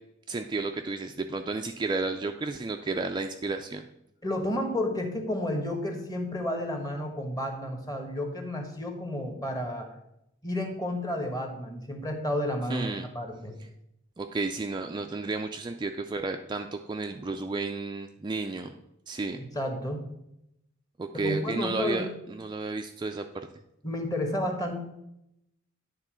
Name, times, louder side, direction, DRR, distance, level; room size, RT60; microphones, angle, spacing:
voice 1, 0.3-3.9 12.7-13.1 14.2-18.7 19.1-19.4 21.0-23.5, right 3 dB, 20° right, 5 dB, 0.3 m, -32 dB
voice 2, 4.2-9.9 10.4-13.6 19.3-20.0 21.1-22.1 23.8-24.7, left 1 dB, 20° left, 4 dB, 1.3 m, -31 dB
9.8 x 3.7 x 6.1 m, 0.82 s
head